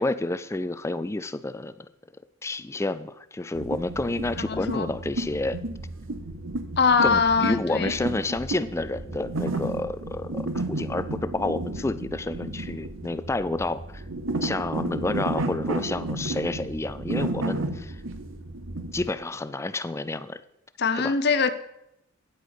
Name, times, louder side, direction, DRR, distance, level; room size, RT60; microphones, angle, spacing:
voice 1, 0.0-1.9 2.4-5.6 7.0-14.0 14.4-18.0 18.9-20.4 21.0-21.1, left 2 dB, 15° left, 0.3 m, -29 dB
sound 1, 3.5-19.1, right 2 dB, 70° right, 0.9 m, -32 dB
voice 2, 4.4-4.9 6.8-8.0 20.8-21.5, left 5 dB, 55° left, 0.7 m, -22 dB
9.4 x 8.2 x 5.0 m
head